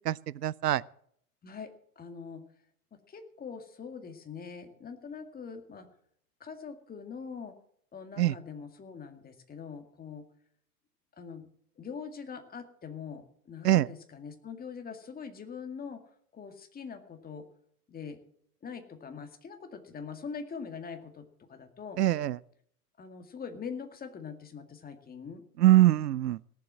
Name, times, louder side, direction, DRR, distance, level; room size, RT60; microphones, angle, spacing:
voice 1, 0.1-0.8 8.2-8.3 13.6-13.9 22.0-22.4 25.6-26.4, right 14 dB, 90° right, 0.6 m, -23 dB
voice 2, 1.4-2.4 2.9-5.9 6.4-7.6 7.9-10.3 11.2-11.5 11.8-16.0 16.3-17.5 17.9-18.2 18.6-22.0 23.0-25.4, left 6 dB, 20° left, 2.1 m, -43 dB
18.0 x 7.7 x 7.5 m
hypercardioid pair, 110°, 46 cm